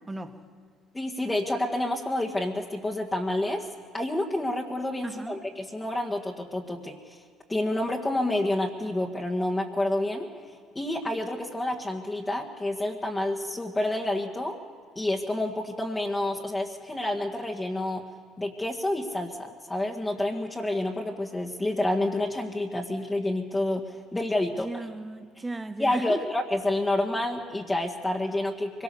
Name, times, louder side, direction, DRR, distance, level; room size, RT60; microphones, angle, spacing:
voice 1, 0.9-3.7 3.9-7.2 7.5-10.3 10.8-14.6 15.0-18.0 18.4-24.7 25.8-28.8, left 1 dB, 15° left, 1.8 m, -29 dB
voice 2, 5.0-5.4 24.5-26.3, right 2 dB, 20° right, 1.7 m, -36 dB
24.0 x 18.0 x 7.1 m
hypercardioid pair, 60°, 0 cm